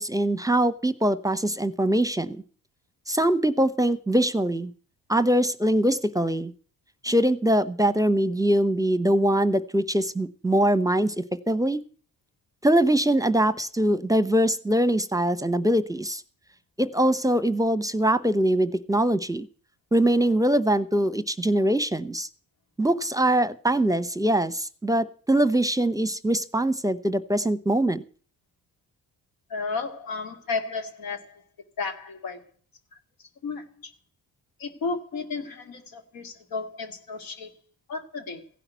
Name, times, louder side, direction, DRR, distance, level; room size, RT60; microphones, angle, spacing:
voice 1, 0.0-2.4 3.1-4.7 5.1-6.5 7.0-11.8 12.6-16.2 16.8-19.5 19.9-22.3 22.8-28.0, right 1 dB, 10° right, 16 dB, 0.8 m, -23 dB
voice 2, 29.5-31.4 31.8-32.4 33.4-33.9 34.6-37.5 37.9-38.4, left 4 dB, 80° left, 7 dB, 2.2 m, -33 dB
15.5 x 5.8 x 9.3 m, 0.43 s
supercardioid pair, 65°, 34 cm